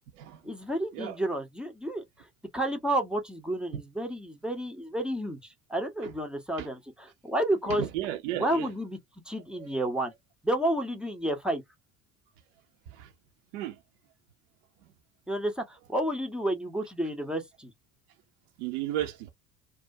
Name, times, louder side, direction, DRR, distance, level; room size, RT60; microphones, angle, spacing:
voice 1, 0.4-2.0 2.5-7.8 8.3-9.0 9.3-10.1 10.4-11.6 15.3-17.7, right 1 dB, ahead, 0.5 m, -30 dB
voice 2, 7.8-8.7 9.6-9.7 12.9-13.1 13.5-13.8 18.6-19.3, right 12 dB, 55° right, 0.6 m, -34 dB
2.3 x 2.1 x 2.5 m
figure-of-eight pair, 60°, 43 cm